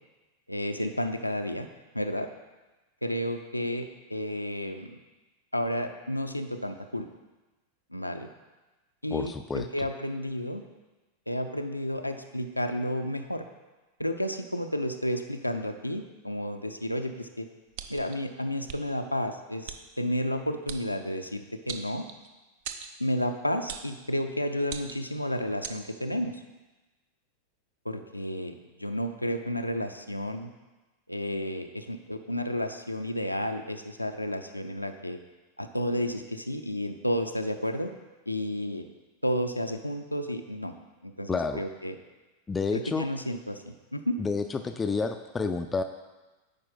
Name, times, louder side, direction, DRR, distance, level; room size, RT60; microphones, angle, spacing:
voice 1, 0.5-1.7 1.9-2.3 3.0-5.0 5.5-7.1 7.9-8.3 9.0-10.6 11.3-13.5 14.0-17.5 17.9-22.0 23.0-26.4 27.8-30.5 31.1-35.2 35.6-37.9 38.3-38.9 39.2-40.7 41.0-41.9 42.7-43.6 43.9-44.2, equal, 85° left, 6 dB, 0.4 m, -31 dB
voice 2, 9.1-9.7 41.3-41.6 42.5-43.0 44.2-45.8, left 4 dB, 15° left, 7 dB, 0.3 m, -29 dB
sound 1, 17.7-18.1 18.7-18.8 19.7-19.8 20.7-20.8 21.7-22.3 22.6-22.9 23.7-23.9 24.6-25.1 25.6-25.8, right 8 dB, 50° right, 0.5 m, -39 dB
8.8 x 4.9 x 4.0 m, 1.2 s
figure-of-eight pair, 90°, 0 cm